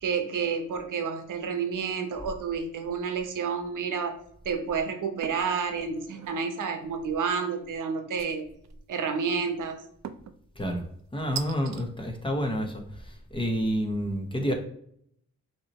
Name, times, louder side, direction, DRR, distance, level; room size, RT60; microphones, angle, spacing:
voice 1, 0.0-4.2 4.4-8.5 8.9-9.8, right 5 dB, 90° right, 6 dB, 0.9 m, -30 dB
sound 1, 5.2-5.5 6.0-6.5 8.2-8.7 10.0-10.4 11.4-11.8, right 8 dB, 60° right, 0.5 m, -39 dB
voice 2, 11.1-12.8 13.3-14.5, equal, 15° left, 3 dB, 0.9 m, -28 dB
5.7 x 3.0 x 2.9 m, 0.68 s
wide cardioid pair, 115°, 30 cm